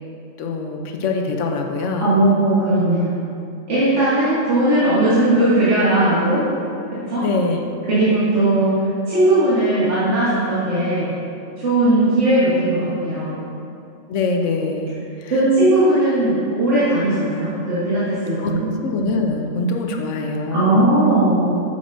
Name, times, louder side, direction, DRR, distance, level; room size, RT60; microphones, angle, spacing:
voice 1, 0.4-2.2 7.2-7.7 14.1-15.4 18.4-18.5 18.8-20.8, left 3 dB, 70° left, 3 dB, 1.0 m, -24 dB
voice 2, 2.0-3.2 3.7-6.4 6.9-7.2 7.9-8.8 9.1-11.1 11.6-13.5 15.3-18.7 20.5-21.6, right 1 dB, 60° right, -12 dB, 1.8 m, -18 dB
8.3 x 7.0 x 2.6 m, 2.5 s
omnidirectional pair, 1.4 m